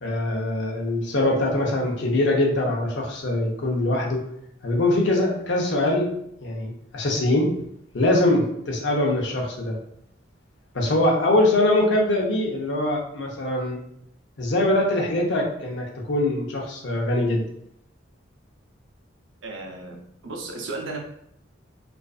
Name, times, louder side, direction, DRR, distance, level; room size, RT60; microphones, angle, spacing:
voice 1, 0.0-4.2 4.6-6.1 6.4-7.5 7.9-9.8 10.7-13.8 14.4-17.5, left 1 dB, 60° left, -1 dB, 0.6 m, -23 dB
voice 2, 19.4-21.0, right 3 dB, 70° right, 1 dB, 0.5 m, -34 dB
2.4 x 2.4 x 2.3 m, 0.74 s
head